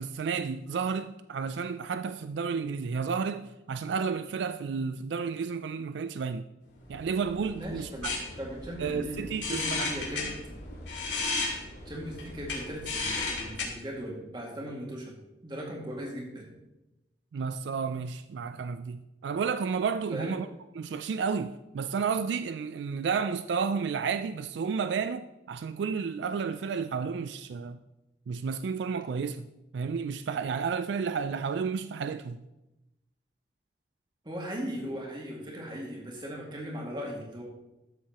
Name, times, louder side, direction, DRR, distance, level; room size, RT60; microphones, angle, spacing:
voice 1, 0.0-6.5 6.9-8.1 8.8-9.9 17.3-20.5 20.8-27.8 28.3-29.5 29.7-32.4, right 5 dB, 80° right, 0.3 m, -31 dB
sound 1, 6.8-13.6, left 3 dB, 90° left, 2.4 m, -35 dB
voice 2, 7.5-10.3 11.9-15.1 15.4-16.5 20.1-20.4 34.2-37.4, equal, 25° right, 2.1 m, -38 dB
12.5 x 7.3 x 3.0 m
head